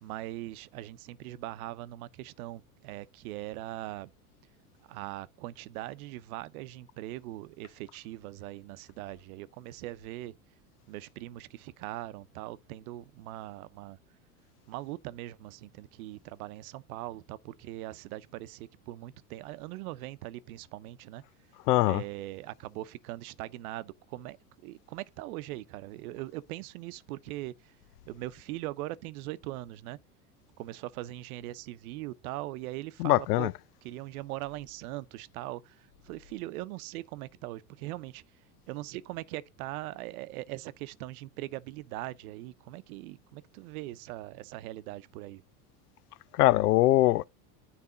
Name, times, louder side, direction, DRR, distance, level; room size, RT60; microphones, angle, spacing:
voice 1, 0.0-4.1 4.9-10.4 10.9-14.0 14.7-21.2 21.8-24.4 24.6-27.7 28.1-30.0 30.6-33.5 33.8-38.2 38.7-45.4, right 16 dB, 70° right, 0.8 m, -41 dB
voice 2, 21.7-22.0 33.0-33.5 46.3-47.3, left 17 dB, 85° left, 0.6 m, -22 dB
9.7 x 4.2 x 3.8 m
hypercardioid pair, 100°, 45 cm